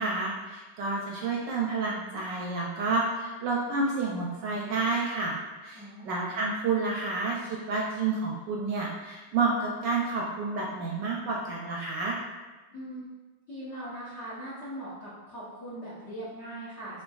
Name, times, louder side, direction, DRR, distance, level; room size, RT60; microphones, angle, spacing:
voice 1, 0.0-12.2, right 3 dB, 75° right, -3 dB, 1.1 m, -30 dB
voice 2, 5.7-6.1 12.7-13.1 13.5-17.0, right 1 dB, 50° left, -9 dB, 0.8 m, -40 dB
4.4 x 3.4 x 2.3 m, 1.2 s
omnidirectional pair, 2.2 m